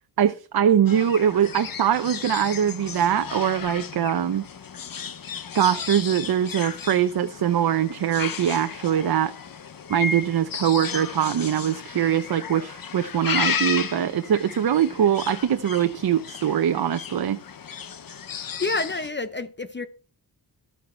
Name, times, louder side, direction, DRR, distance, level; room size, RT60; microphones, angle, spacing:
voice 1, 0.2-4.5 5.5-9.3 9.9-17.4, right 9 dB, 65° right, 0.8 m, -22 dB
sound 1, 0.9-19.1, left 6 dB, 55° left, 1.0 m, -34 dB
voice 2, 18.6-19.9, left 3 dB, 25° left, 0.8 m, -28 dB
13.5 x 9.1 x 4.5 m
wide cardioid pair, 135°, 40 cm